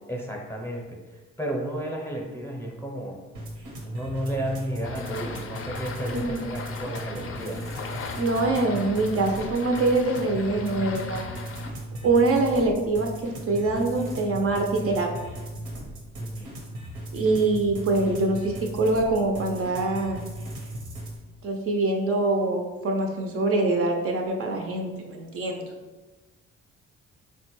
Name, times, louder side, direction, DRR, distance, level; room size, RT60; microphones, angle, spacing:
voice 1, 0.1-0.8 1.4-3.2 3.8-7.6 16.2-16.5, right 1 dB, 10° left, -1 dB, 0.6 m, -32 dB
sound 1, 3.3-21.2, right 1 dB, 90° right, 0.8 m, -37 dB
sound 2, 4.8-11.7, left 5 dB, 45° left, 0.4 m, -38 dB
voice 2, 6.1-6.4 8.2-11.3 12.0-15.1 17.1-20.3 21.4-25.7, right 2 dB, 50° right, 2 dB, 0.4 m, -24 dB
3.6 x 2.1 x 3.0 m, 1.2 s
cardioid pair, 90°, 30 cm